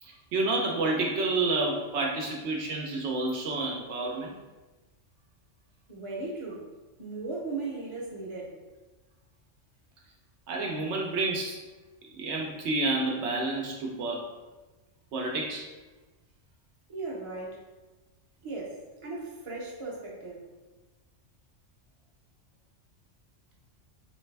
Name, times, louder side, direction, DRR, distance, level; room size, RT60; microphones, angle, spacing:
voice 1, 0.0-4.4 10.5-11.6 12.1-14.3 15.1-15.7, right 2 dB, 70° right, 0 dB, 0.9 m, -29 dB
voice 2, 5.9-6.7 7.0-8.6 16.9-17.7 18.4-20.5, right 3 dB, 30° right, -3 dB, 0.7 m, -37 dB
3.2 x 3.2 x 3.2 m, 1.2 s
omnidirectional pair, 1.2 m